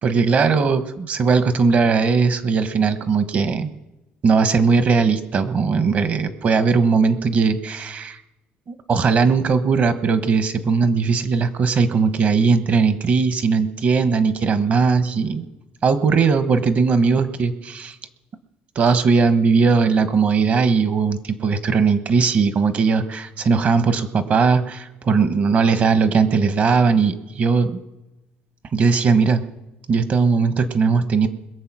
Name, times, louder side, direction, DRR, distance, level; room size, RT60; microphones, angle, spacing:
voice 1, 0.0-3.7 4.2-8.2 8.7-15.5 15.8-17.9 18.7-27.8 28.7-29.4 29.9-31.3, right 5 dB, 40° right, 11 dB, 1.1 m, -19 dB
21.5 x 7.5 x 6.1 m, 0.99 s
cardioid pair, 145°, 4 cm